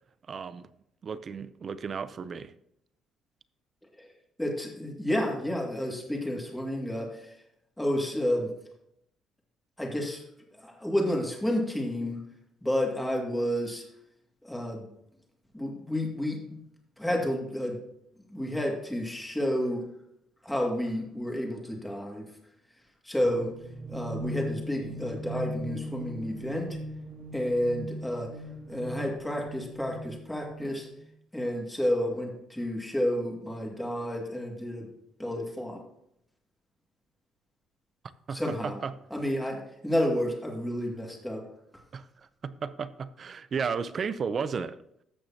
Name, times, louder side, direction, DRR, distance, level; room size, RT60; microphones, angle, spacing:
voice 1, 0.3-0.7 1.0-2.5 38.3-38.9 41.9-44.8, right 6 dB, 40° right, 14 dB, 0.5 m, -34 dB
voice 2, 4.4-7.3 7.8-8.5 9.8-10.2 10.6-12.2 12.6-13.8 14.4-14.9 15.5-16.6 17.0-17.8 18.3-19.9 20.4-22.3 23.0-23.5 23.9-26.7 27.3-28.3 28.7-30.9 31.3-34.9 35.2-35.8 38.3-38.8 39.1-41.5, equal, 5° left, 0 dB, 2.1 m, -30 dB
sound 1, 23.2-31.0, equal, 55° right, 2.3 m, -39 dB
14.5 x 6.3 x 2.8 m, 0.76 s
cardioid pair, 115°, 0 cm